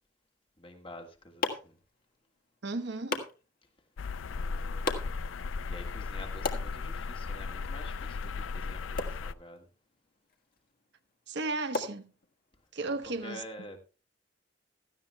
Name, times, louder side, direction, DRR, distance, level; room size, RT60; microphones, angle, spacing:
voice 1, 0.6-1.8 4.3-5.1 5.6-9.7 12.9-13.0 13.2-13.8, left 1 dB, 25° left, 1.7 m, -48 dB
sound 1, 0.7-12.7, left 3 dB, 50° left, 1.5 m, -41 dB
voice 2, 2.6-3.2 11.3-12.1 12.7-13.4, right 3 dB, 60° right, 0.9 m, -34 dB
sound 2, 4.0-9.3, left 4 dB, 85° left, 0.4 m, -36 dB
16.5 x 13.0 x 2.2 m
head